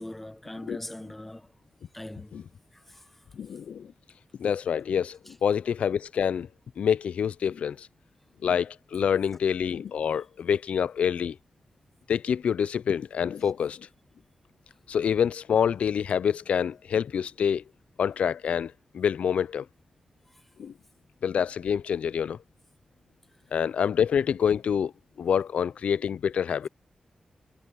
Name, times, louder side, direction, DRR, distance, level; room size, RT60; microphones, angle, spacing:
voice 1, 0.0-1.5 1.9-2.4 2.7-3.2 5.3-5.4 20.3-20.5, left 1 dB, 10° left, 0.9 m, -42 dB
voice 2, 3.3-3.9 4.4-6.5 6.8-7.9 8.4-11.4 12.1-13.9 14.9-17.6 18.0-19.7 20.6-20.7 21.2-22.4 23.5-24.9 25.2-26.7, left 7 dB, 80° left, 0.3 m, -26 dB
wide cardioid pair, 175°, 2 cm